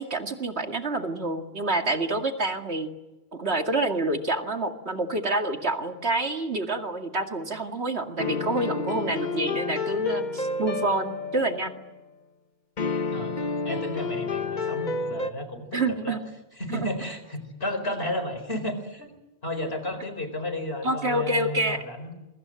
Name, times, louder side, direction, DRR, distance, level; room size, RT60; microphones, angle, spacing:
voice 1, 0.0-2.9 3.3-11.8 15.7-16.2 16.7-16.9 20.8-21.8, right 2 dB, 75° right, 5 dB, 2.5 m, -27 dB
sound 1, 8.2-11.9 12.8-15.3, left 3 dB, 45° left, 1.2 m, -30 dB
voice 2, 13.6-16.2 16.6-19.1 19.4-22.1, left 1 dB, 65° left, 9 dB, 4.9 m, -33 dB
27.0 x 23.5 x 7.7 m, 1.0 s
omnidirectional pair, 1.1 m